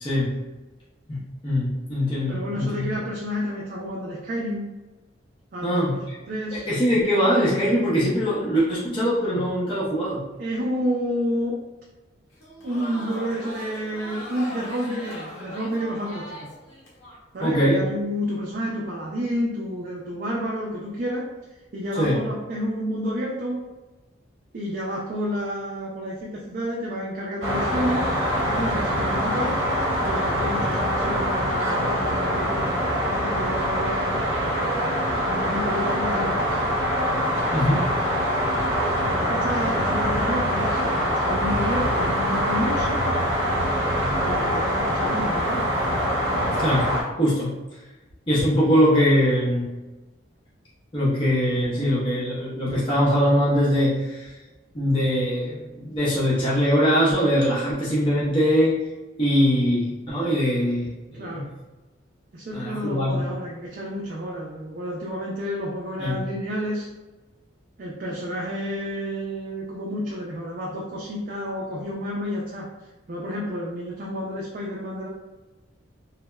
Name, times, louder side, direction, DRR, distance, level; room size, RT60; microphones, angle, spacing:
voice 1, 0.0-0.3 1.1-2.9 5.6-6.0 6.5-10.2 17.4-17.8 22.0-22.2 37.5-37.9 46.6-47.5 48.3-49.7 50.9-54.3 54.7-58.8 59.2-61.4 62.5-63.2 66.0-66.2, equal, 25° left, -8 dB, 0.6 m, -22 dB
voice 2, 2.3-4.7 5.5-6.0 6.3-6.7 10.4-11.6 12.6-16.5 17.3-21.3 21.7-23.6 24.5-28.1 28.4-29.6 30.0-32.6 33.1-34.2 35.2-36.6 38.8-43.0 44.2-45.7 61.2-61.5 62.3-66.9 67.8-72.7 73.1-75.1, equal, 45° right, -3 dB, 0.4 m, -30 dB
Crowd, 12.3-17.2, left 1 dB, 85° left, 1.0 m, -39 dB
sound 1, 27.4-47.0, equal, 60° right, 0.9 m, -24 dB
3.1 x 2.0 x 2.2 m, 1.1 s
head